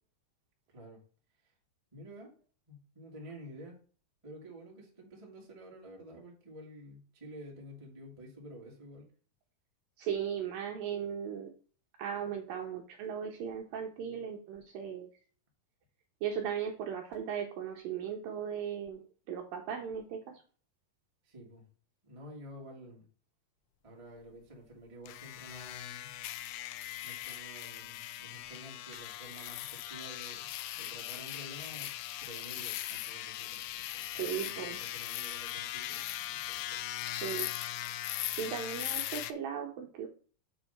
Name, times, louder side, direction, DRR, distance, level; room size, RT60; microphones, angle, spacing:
voice 1, 1.9-2.3 2.7-3.8 4.2-9.1 21.2-21.6 22.0-23.0 23.8-26.1 27.0-31.9 32.2-34.3 34.9-36.8, equal, 20° right, -2 dB, 0.9 m, -50 dB
voice 2, 10.0-11.5 12.0-15.1 16.2-19.0 19.3-20.2 34.2-34.8 37.1-37.5 38.4-40.1, right 8 dB, 75° right, 2 dB, 2.1 m, -37 dB
sound 1, 25.1-39.3, left 14 dB, 80° left, 2.3 m, -39 dB
7.0 x 4.2 x 5.7 m, 0.40 s
omnidirectional pair, 4.9 m